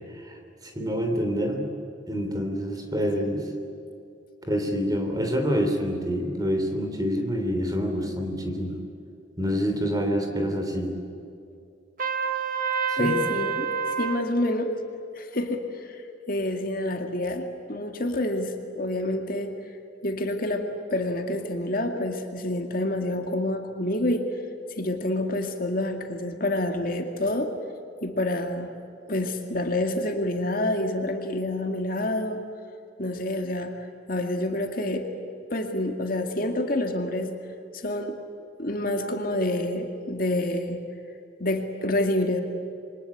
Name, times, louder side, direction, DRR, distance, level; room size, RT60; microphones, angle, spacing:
voice 1, 0.7-1.7 2.1-3.5 4.4-8.8 9.4-10.9 12.9-13.1, equal, 20° right, 4 dB, 3.4 m, -27 dB
Trumpet, 12.0-14.2, right 7 dB, 45° right, 1.6 m, -28 dB
voice 2, 13.0-13.7 14.0-14.7 15.2-19.5 20.0-24.3 24.8-27.5 28.0-28.7 29.1-32.4 33.0-35.1 35.5-37.3 37.7-38.2 38.6-40.8 41.4-42.4, left 1 dB, 50° left, 4 dB, 2.2 m, -28 dB
28.0 x 24.0 x 8.7 m, 2.7 s
head